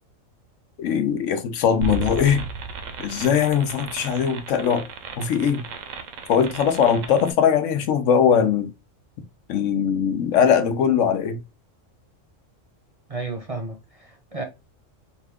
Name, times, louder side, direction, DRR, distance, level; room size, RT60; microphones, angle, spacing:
voice 1, 0.8-2.4 3.0-4.9 5.2-5.6 6.3-8.7 9.5-11.4, left 7 dB, 75° left, 1.0 m, -20 dB
sound 1, 1.8-7.3, right 4 dB, 80° right, 1.1 m, -34 dB
voice 2, 13.1-14.4, right 3 dB, 35° right, 0.7 m, -32 dB
4.3 x 2.3 x 3.5 m
omnidirectional pair, 1.3 m